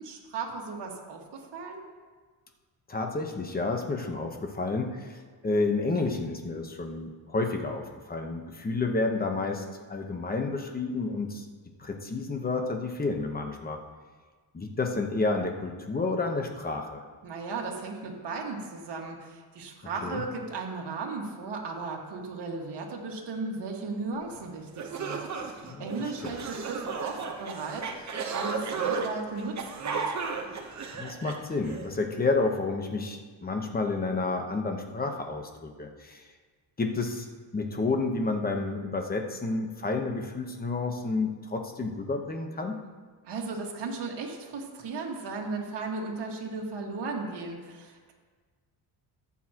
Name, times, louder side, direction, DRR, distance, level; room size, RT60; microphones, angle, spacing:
voice 1, 0.0-1.8 17.2-30.0 43.2-48.1, right 3 dB, 60° right, -1 dB, 1.9 m, -36 dB
voice 2, 2.9-5.2 5.4-9.6 9.9-11.5 11.8-13.8 14.5-17.0 20.0-20.2 25.7-25.9 26.2-26.4 31.0-36.2 36.8-42.8, left 3 dB, 20° left, 3 dB, 1.1 m, -30 dB
sound 1, 24.4-24.5 24.8-31.9, right 5 dB, 35° right, 1.0 m, -34 dB
14.0 x 8.5 x 3.0 m, 1.4 s
cardioid pair, 130°, 47 cm